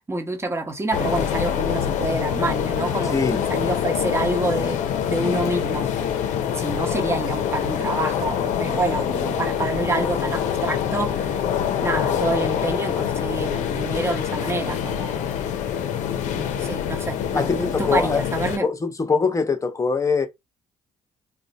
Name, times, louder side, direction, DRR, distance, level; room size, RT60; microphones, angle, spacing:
voice 1, 0.1-5.9 6.5-11.4 11.8-15.4 16.3-18.7, right 2 dB, 20° right, 0.9 m, -27 dB
sound 1, 0.9-18.6, left 9 dB, 70° left, 0.5 m, -25 dB
voice 2, 3.1-3.5 17.3-18.2 18.6-20.3, left 5 dB, 25° left, 0.8 m, -22 dB
2.5 x 2.2 x 4.0 m
supercardioid pair, 60°, 13 cm